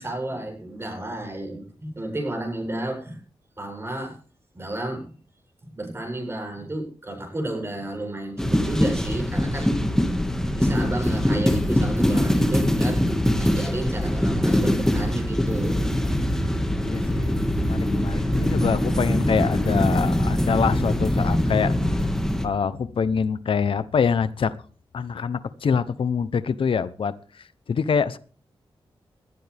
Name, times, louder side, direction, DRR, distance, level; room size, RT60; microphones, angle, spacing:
voice 1, 0.0-3.2 3.6-4.2 4.5-5.2 5.7-9.7 10.5-15.8 16.1-16.3 17.0-17.1, right 1 dB, 25° right, 2 dB, 7.8 m, -32 dB
sound 1, 8.4-22.5, left 1 dB, 5° left, 1.9 m, -23 dB
voice 2, 16.8-21.8 22.4-24.5 24.9-28.2, left 6 dB, 65° left, 14 dB, 0.9 m, -25 dB
20.0 x 12.0 x 3.5 m, 0.39 s
wide cardioid pair, 120°, 10 cm